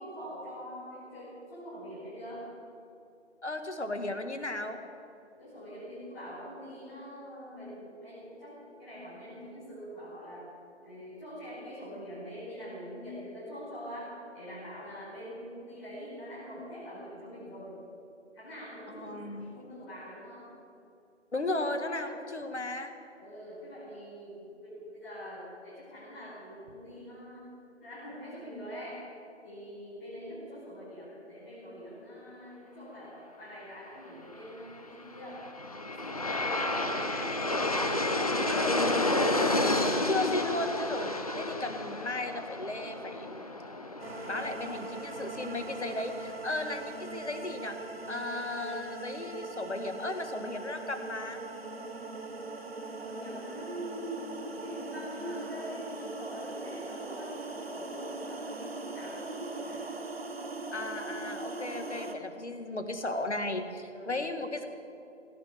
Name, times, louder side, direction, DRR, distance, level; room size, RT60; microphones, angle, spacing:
voice 1, 0.0-2.4 5.4-10.4 10.8-17.8 18.3-20.4 23.2-27.4 27.8-29.0 29.4-35.4 35.7-37.3 38.0-38.7 52.9-59.9 61.7-62.0 63.9-64.2, equal, 15° left, -12 dB, 4.9 m, -44 dB
voice 2, 3.4-4.8 18.9-19.6 21.3-22.9 38.5-39.2 39.9-43.6 44.3-47.8 48.1-51.4 60.7-64.7, left 2 dB, 65° left, 7 dB, 1.8 m, -35 dB
Aircraft, 35.1-46.2, left 2 dB, 30° left, 0.8 m, -31 dB
sound 1, 44.0-62.1, right 3 dB, 55° right, 1.3 m, -41 dB
16.5 x 11.5 x 7.6 m, 2.7 s
figure-of-eight pair, 155°, 36 cm